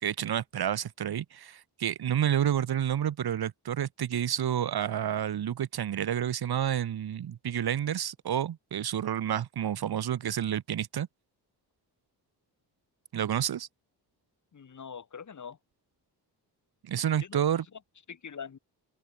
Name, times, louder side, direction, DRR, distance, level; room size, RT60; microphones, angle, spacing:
voice 1, 0.0-11.1 13.1-13.7 16.8-17.6, right 10 dB, 65° right, 2.5 m, -29 dB
voice 2, 14.5-15.6 17.2-17.4 18.1-18.6, left 6 dB, 45° left, 6.0 m, -43 dB
wide cardioid pair, 135°, 40 cm